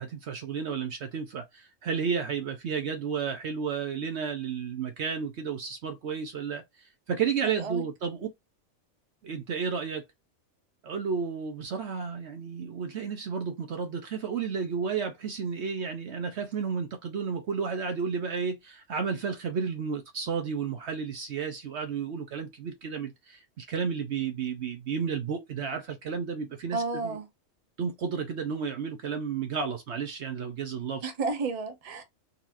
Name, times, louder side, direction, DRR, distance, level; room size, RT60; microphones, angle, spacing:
voice 1, 0.0-6.6 7.1-8.3 9.2-10.0 10.8-27.2 27.8-31.1, right 6 dB, 60° right, 0.9 m, -32 dB
voice 2, 7.4-7.9 26.7-27.3 31.0-32.0, right 3 dB, 35° right, 0.8 m, -32 dB
4.0 x 2.9 x 2.6 m
omnidirectional pair, 1.4 m